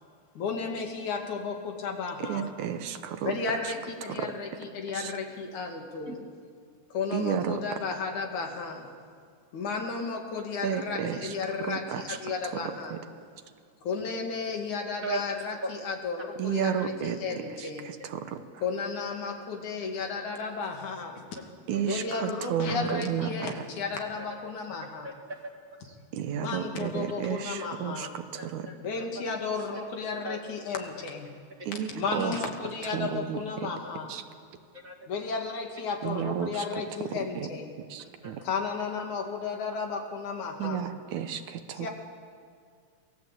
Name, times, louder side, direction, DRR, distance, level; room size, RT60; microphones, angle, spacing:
voice 1, 0.4-2.6 3.2-6.1 6.9-8.9 9.5-13.0 13.8-17.9 18.6-21.2 21.8-25.1 26.4-28.2 28.8-31.3 31.9-34.2 35.1-37.7 38.4-40.9 41.7-41.9, left 5 dB, 75° left, 3 dB, 3.7 m, -33 dB
voice 2, 2.2-3.3 4.1-4.3 4.9-5.1 7.1-7.6 10.6-11.2 11.7-12.2 12.9-13.0 16.4-17.2 18.1-18.3 21.7-23.5 26.1-28.6 31.7-32.3 32.9-33.4 34.1-34.2 36.0-36.6 37.9-38.4 40.6-41.9, right 9 dB, 75° right, 8 dB, 2.5 m, -32 dB
voice 3, 15.0-15.7 21.7-22.2 22.9-23.0 24.2-24.3 25.0-26.0 28.4-29.2 29.7-29.8 30.2-30.4 31.6-31.7 34.7-35.1 35.4-35.5 38.0-38.5 40.6-40.7, right 2 dB, 30° right, 2 dB, 2.2 m, -39 dB
27.5 x 19.0 x 8.2 m, 2.1 s
omnidirectional pair, 3.5 m